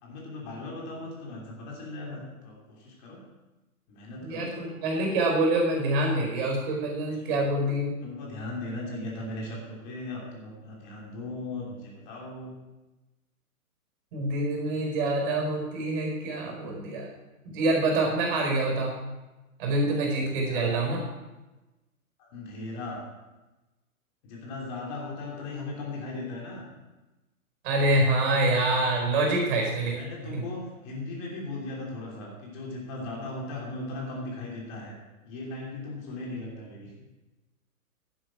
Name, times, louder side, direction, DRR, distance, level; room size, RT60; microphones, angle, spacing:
voice 1, 0.0-3.2 3.9-4.7 7.2-7.4 8.0-12.5 20.4-20.8 22.3-23.0 24.2-26.6 29.9-34.9 35.2-36.9, left 2 dB, 30° left, -2 dB, 3.2 m, -38 dB
voice 2, 4.2-7.9 14.1-17.1 17.4-19.0 19.6-21.0 27.6-29.9 30.3-30.4, right 2 dB, 40° right, 1 dB, 4.6 m, -26 dB
11.0 x 11.0 x 4.7 m, 1.1 s
figure-of-eight pair, 130°, 43 cm